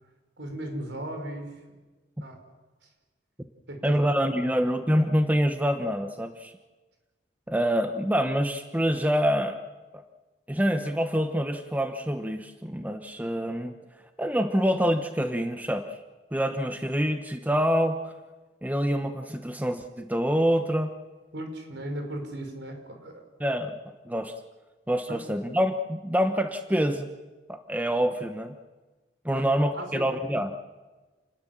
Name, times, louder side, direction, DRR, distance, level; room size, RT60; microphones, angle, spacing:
voice 1, 0.4-1.6 2.2-2.4 3.7-4.0 4.4-4.5 21.3-23.2 25.1-25.2 29.3-29.4 29.7-29.9, right 1 dB, 70° right, 5 dB, 5.4 m, -36 dB
voice 2, 3.8-6.5 7.5-9.6 9.9-10.0 10.5-13.7 14.2-16.0 16.3-18.1 18.6-20.9 23.4-23.8 24.0-24.3 24.9-27.1 27.5-28.5 29.2-30.6, equal, 10° right, 7 dB, 1.0 m, -26 dB
29.0 x 20.0 x 7.4 m, 1.2 s
head